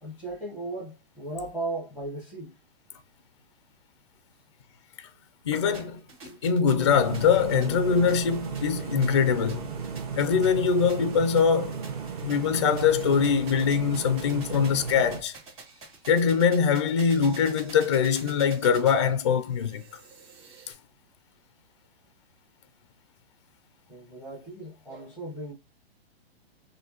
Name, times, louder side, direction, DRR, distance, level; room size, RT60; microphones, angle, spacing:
voice 1, 0.0-2.5 23.9-25.5, right 2 dB, 5° right, 1.0 m, -36 dB
voice 2, 5.5-9.7 10.2-11.8 12.2-15.3 16.1-19.8, left 6 dB, 30° left, 0.4 m, -23 dB
sound 1, 5.7-20.7, right 4 dB, 20° right, 2.4 m, -48 dB
sound 2, 6.8-15.2, right 6 dB, 40° right, 1.5 m, -35 dB
6.0 x 2.6 x 2.8 m
hypercardioid pair, 170°, 31 cm